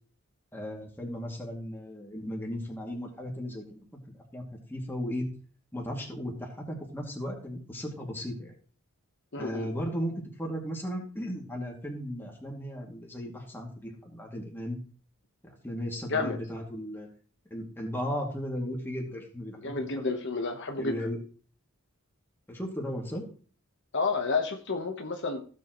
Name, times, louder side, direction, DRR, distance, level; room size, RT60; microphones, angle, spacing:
voice 1, 0.5-4.4 4.7-5.3 5.7-8.6 9.4-14.8 15.4-17.1 17.5-19.6 19.9-20.1 20.8-21.2 22.5-23.2, equal, 10° left, -1 dB, 2.4 m, -36 dB
voice 2, 9.3-9.7 16.1-16.4 19.6-21.1 23.9-25.4, left 4 dB, 55° left, 4 dB, 1.2 m, -30 dB
15.5 x 7.6 x 3.1 m, 0.40 s
head